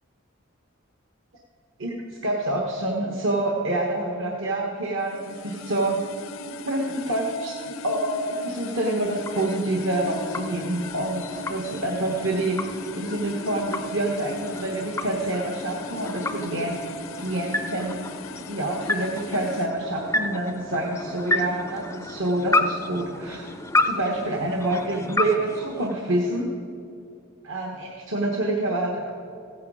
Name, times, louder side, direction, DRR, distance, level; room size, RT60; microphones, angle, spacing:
voice 1, 2.2-6.0 6.7-7.6 7.8-12.6 12.9-16.8 17.2-18.0 18.5-23.5 23.8-26.5 27.4-29.1, right 1 dB, 70° right, 0 dB, 1.2 m, -27 dB
sound 1, 5.0-19.7, left 3 dB, 75° left, 0.6 m, -39 dB
sound 2, 8.7-26.5, left 2 dB, 15° left, 0.4 m, -31 dB
15.0 x 9.4 x 4.9 m, 2.4 s
head